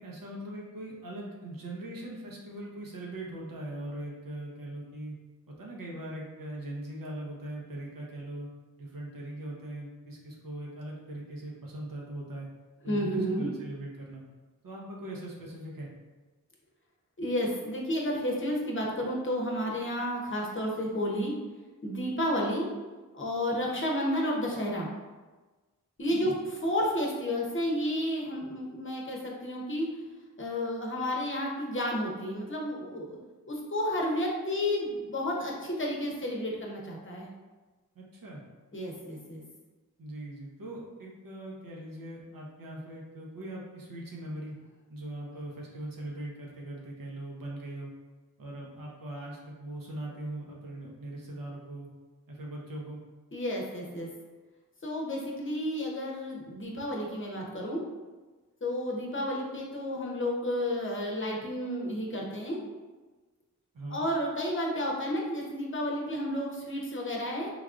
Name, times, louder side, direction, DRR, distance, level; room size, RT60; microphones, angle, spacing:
voice 1, 0.0-5.2 5.5-8.5 8.8-12.5 12.8-14.2 14.6-15.9 26.1-26.4 37.9-38.4 40.0-44.6 44.9-47.9 48.4-51.9 52.3-53.0 63.7-64.0, right 1 dB, 70° right, -3 dB, 0.8 m, -40 dB
voice 2, 12.9-13.5 17.2-21.3 21.8-22.7 23.1-24.9 26.0-26.3 26.6-29.9 30.4-33.2 33.5-37.3 38.7-39.4 53.3-54.1 54.8-57.8 58.6-62.6 63.9-67.5, equal, 35° left, -2 dB, 0.8 m, -31 dB
3.3 x 2.3 x 2.4 m, 1.2 s
cardioid pair, 45°, 35 cm